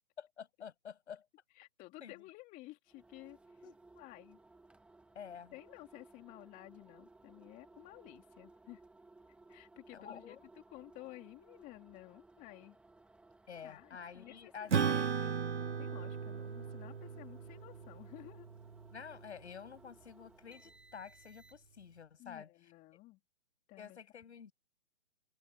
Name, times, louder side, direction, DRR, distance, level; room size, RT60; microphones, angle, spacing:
voice 1, 0.2-1.2 2.0-2.3 3.6-3.7 5.1-5.5 9.9-10.5 13.5-15.1 18.9-22.5 23.8-24.5, left 7 dB, 65° left, 6.6 m, -49 dB
voice 2, 1.5-3.6 4.0-4.4 5.5-8.8 9.5-12.8 13.6-18.5 22.2-23.2 23.7-24.0, left 19 dB, 20° left, 2.9 m, -54 dB
sound 1, 2.9-21.9, right 2 dB, 5° right, 1.8 m, -61 dB
Acoustic guitar / Strum, 14.7-19.5, right 6 dB, 75° right, 2.2 m, -37 dB
hypercardioid pair, 140°, 36 cm